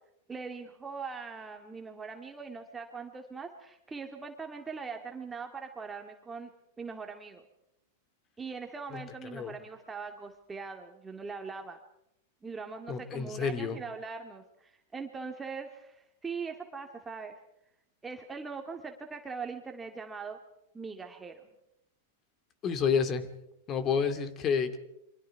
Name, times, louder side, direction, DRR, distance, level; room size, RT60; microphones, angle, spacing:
voice 1, 0.3-6.5 6.8-7.4 8.4-11.8 12.4-17.4 18.0-20.4 20.7-21.6, right 5 dB, 15° right, 3 dB, 2.2 m, -41 dB
voice 2, 12.9-13.8 22.6-23.3 23.7-24.8, left 6 dB, 35° left, 11 dB, 2.4 m, -29 dB
28.5 x 24.5 x 4.7 m, 0.82 s
hypercardioid pair, 105°, 0 cm